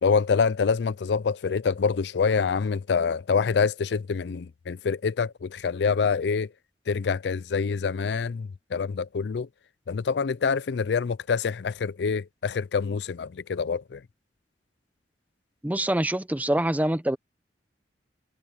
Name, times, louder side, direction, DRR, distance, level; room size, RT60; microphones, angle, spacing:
voice 1, 0.0-6.5 6.9-9.5 9.9-14.0, left 5 dB, 70° left, 0.4 m, -26 dB
voice 2, 15.6-17.2, right 1 dB, 10° right, 0.7 m, -25 dB
head